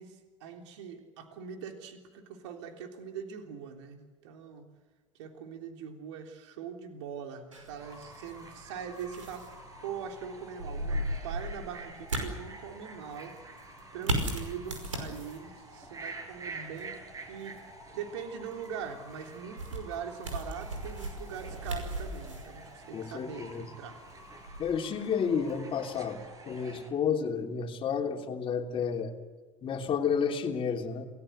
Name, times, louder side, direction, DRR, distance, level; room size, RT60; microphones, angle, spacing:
voice 1, 0.0-4.7 5.2-13.4 13.9-17.0 17.3-17.6 17.9-24.0, right 7 dB, 65° right, 4 dB, 3.5 m, -42 dB
sound 1, 7.5-25.6, right 1 dB, 85° right, 5.4 m, -39 dB
Fowl / Bird, 7.8-26.9, right 2 dB, 20° right, 6.0 m, -48 dB
voice 2, 22.9-23.7 24.6-26.2 26.5-29.1 29.6-31.1, left 6 dB, 35° left, 2 dB, 3.3 m, -31 dB
29.0 x 19.5 x 8.1 m, 1.3 s
figure-of-eight pair, 80°, 16 cm